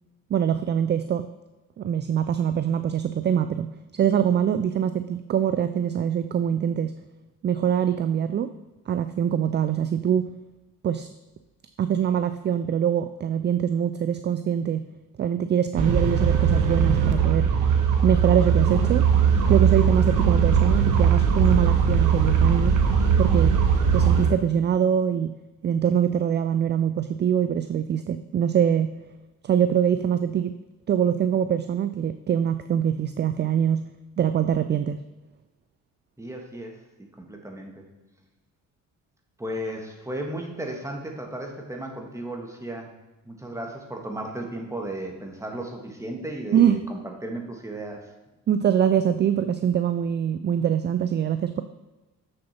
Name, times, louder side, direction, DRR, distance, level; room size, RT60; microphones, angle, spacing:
voice 1, 0.3-1.3 1.8-3.7 3.9-6.9 7.4-8.5 8.9-10.3 10.8-11.1 11.8-14.8 15.2-17.5 18.0-19.0 19.5-22.8 23.2-23.5 23.9-25.3 25.6-28.9 29.4-30.5 30.9-33.8 34.2-35.0 46.5-46.8 48.5-51.6, right 9 dB, 35° right, 11 dB, 0.4 m, -23 dB
sound 1, 15.8-24.3, right 7 dB, 85° right, 1.1 m, -20 dB
voice 2, 36.2-37.9 39.4-42.9 43.2-48.0, right 1 dB, 10° right, 2 dB, 1.7 m, -35 dB
7.0 x 6.5 x 4.3 m, 1.1 s
cardioid pair, 90°, 30 cm